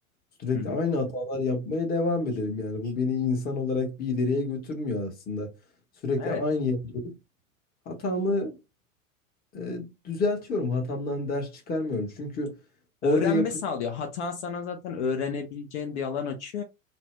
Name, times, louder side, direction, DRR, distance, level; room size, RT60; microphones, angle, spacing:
voice 1, 0.4-5.5 6.0-6.8 7.0-7.1 7.9-8.5 9.5-12.5 13.0-13.5, left 3 dB, 20° left, 1.0 m, -28 dB
voice 2, 13.0-16.6, left 6 dB, 55° left, 0.8 m, -31 dB
2.7 x 2.1 x 3.1 m
figure-of-eight pair, 90°, 42 cm